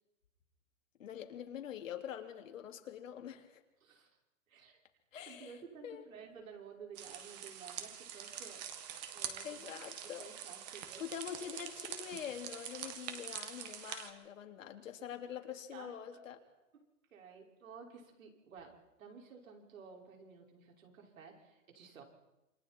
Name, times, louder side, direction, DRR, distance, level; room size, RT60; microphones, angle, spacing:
voice 1, 1.0-3.6 5.1-5.5 5.8-6.1 9.4-10.3 11.0-16.4, left 9 dB, 75° left, 4 dB, 3.0 m, -45 dB
voice 2, 3.8-4.2 4.5-4.8 5.3-8.7 9.1-11.0 15.0-15.3 15.7-16.2 16.7-22.0, right 6 dB, 85° right, 1 dB, 6.0 m, -54 dB
sound 1, 6.9-14.1, right 9 dB, 30° right, 1.9 m, -45 dB
28.0 x 25.5 x 4.6 m, 0.98 s
hypercardioid pair, 170°, 39 cm